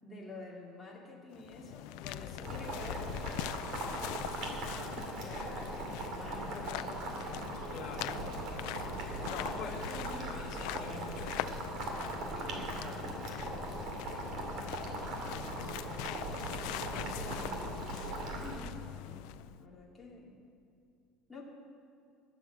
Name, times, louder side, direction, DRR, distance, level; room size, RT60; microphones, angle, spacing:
voice 1, 0.0-3.8 4.9-7.6 8.1-8.6 9.6-10.4 12.3-13.9 14.2-14.5 14.8-15.7 16.6-17.8 18.2-20.4 21.3-21.4, left 2 dB, 10° left, -4 dB, 2.3 m, -49 dB
sound 1, 1.3-19.6, left 14 dB, 65° left, 0.4 m, -42 dB
Boiling, 2.4-18.6, right 2 dB, 45° right, 2.4 m, -40 dB
voice 2, 7.7-8.2 9.2-9.8 10.1-11.6 15.3-15.8, left 5 dB, 40° left, 0 dB, 2.0 m, -45 dB
20.5 x 7.7 x 7.3 m, 2.6 s
cardioid pair, 175°, 0 cm